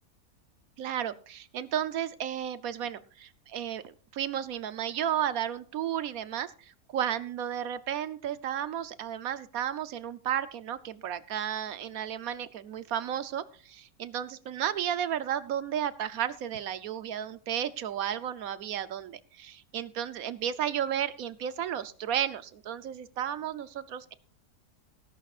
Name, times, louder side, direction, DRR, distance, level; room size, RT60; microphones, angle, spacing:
voice 1, 0.8-24.1, right 10 dB, 65° right, 15 dB, 1.1 m, -33 dB
20.0 x 11.5 x 2.5 m, 0.39 s
omnidirectional pair, 1.7 m